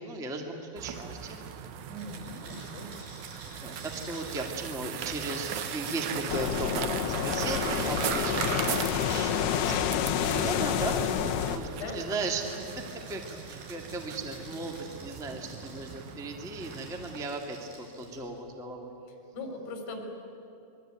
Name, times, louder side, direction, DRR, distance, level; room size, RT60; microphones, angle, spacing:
voice 1, 0.0-1.4 3.6-9.9 10.2-11.0 11.5-12.8 13.1-18.9, right 2 dB, ahead, 2 dB, 0.7 m, -37 dB
sound 1, 0.8-17.3, right 8 dB, 85° right, 1.7 m, -38 dB
voice 2, 1.9-2.9 11.7-12.0 19.3-20.1, left 2 dB, 90° left, 3 dB, 5.9 m, -40 dB
sound 2, 1.9-11.6 12.2-16.1 16.5-18.4, right 2 dB, 60° right, 8.0 m, -50 dB
sound 3, 6.3-11.6, left 9 dB, 70° left, 2.8 m, -29 dB
26.5 x 22.0 x 9.2 m, 3.0 s
omnidirectional pair, 5.2 m